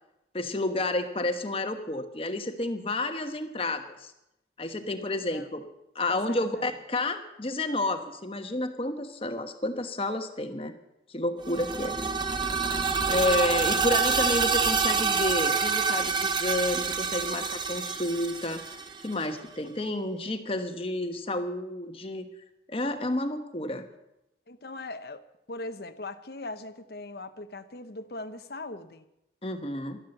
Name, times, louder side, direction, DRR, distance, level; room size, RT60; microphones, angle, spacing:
voice 1, 0.3-4.1 4.6-5.6 5.9-10.7 11.1-12.0 13.1-22.3 22.7-23.8 29.4-30.0, left 2 dB, 30° left, 7 dB, 1.2 m, -30 dB
voice 2, 6.1-6.7 22.9-23.1 24.5-29.1, left 2 dB, 60° left, 11 dB, 0.9 m, -40 dB
sound 1, 11.4-19.3, right 5 dB, 25° right, 0.8 m, -27 dB
12.5 x 11.5 x 7.8 m, 0.87 s
head